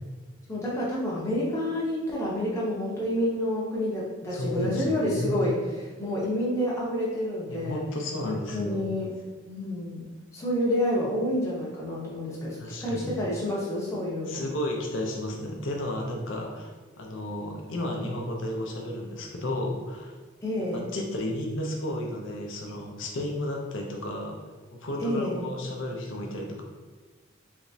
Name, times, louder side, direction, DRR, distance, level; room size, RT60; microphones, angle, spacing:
voice 1, 0.5-7.8 8.2-9.2 9.4-10.0 10.3-14.5 20.4-20.8 25.0-25.4, left 1 dB, 15° left, -6 dB, 0.7 m, -29 dB
voice 2, 4.3-5.3 7.5-8.8 12.6-13.1 14.3-20.2 20.7-24.4 24.7-26.6, left 1 dB, 80° left, 0 dB, 0.6 m, -33 dB
3.4 x 3.0 x 2.7 m, 1.3 s
head